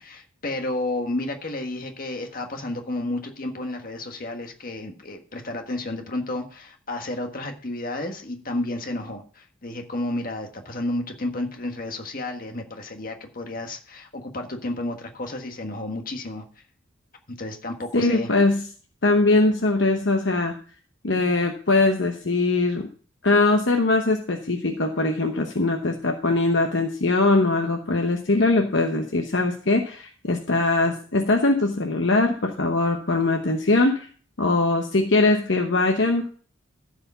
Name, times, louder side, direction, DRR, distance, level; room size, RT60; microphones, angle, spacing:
voice 1, 0.0-16.4 17.4-18.3, left 2 dB, 45° left, 4 dB, 1.5 m, -31 dB
voice 2, 17.9-18.7 19.0-20.6 21.0-22.9 23.2-34.1 34.4-36.3, left 2 dB, 60° left, 3 dB, 1.0 m, -21 dB
14.0 x 5.0 x 5.5 m, 0.42 s
head